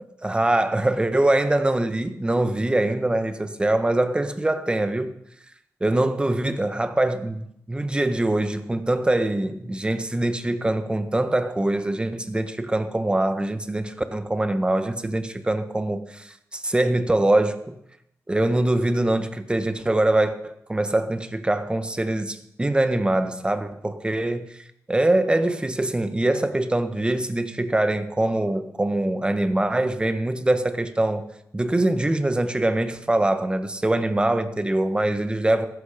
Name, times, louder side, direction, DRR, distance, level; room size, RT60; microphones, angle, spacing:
voice 1, 0.2-5.1 5.8-17.7 18.3-24.5 24.9-31.2 31.5-35.7, right 1 dB, 15° right, 1.5 m, -23 dB
15.5 x 14.5 x 5.3 m
cardioid pair, 80°, 6 cm